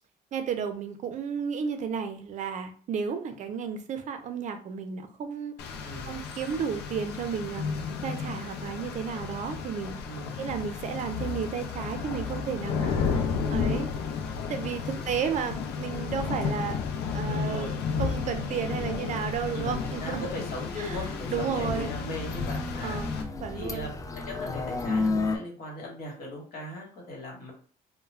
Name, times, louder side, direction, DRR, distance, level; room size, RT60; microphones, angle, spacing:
voice 1, 0.3-5.5 6.1-7.7 8.0-10.0 10.4-12.9 13.5-13.9 14.5-16.8 17.1-17.7 18.0-20.3 20.8-21.0 21.3-21.9 22.8-23.1 23.4-23.9, right 7 dB, 45° right, 7 dB, 0.5 m, -32 dB
Rain, 5.6-23.2, left 5 dB, 80° left, 0.5 m, -32 dB
voice 2, 5.8-6.1 10.1-10.3 12.8-13.3 14.8-15.2 17.3-17.8 19.5-23.0 23.5-23.9 24.1-27.5, left 1 dB, 60° left, -1 dB, 1.3 m, -39 dB
sound 1, 18.9-25.4, left 3 dB, 20° left, 0.3 m, -33 dB
2.2 x 2.1 x 3.2 m, 0.43 s
cardioid pair, 110°, 17 cm